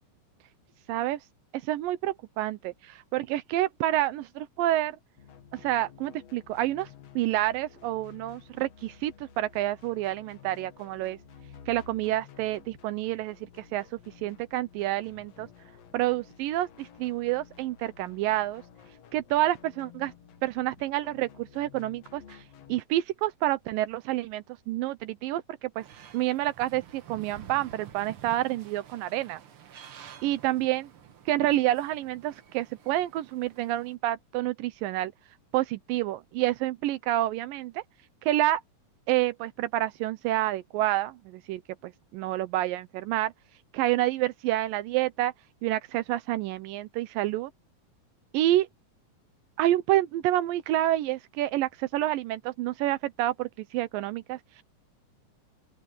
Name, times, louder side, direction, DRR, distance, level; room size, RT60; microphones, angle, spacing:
voice 1, 0.9-1.2 1.5-5.0 5.5-6.9 7.2-11.2 11.7-13.9 14.2-15.5 15.9-18.6 19.1-20.1 20.4-22.4 22.7-25.9 26.1-29.4 30.2-30.9 31.3-35.1 35.5-37.8 38.2-38.6 39.1-43.3 43.7-45.3 45.6-47.5 48.3-48.7 49.6-54.6, right 15 dB, 85° right, 2.5 m, -28 dB
sound 1, 5.2-22.8, left 8 dB, 55° left, 2.4 m, -53 dB
sound 2, 25.8-33.9, right 9 dB, 55° right, 1.6 m, -50 dB
open air
omnidirectional pair, 3.9 m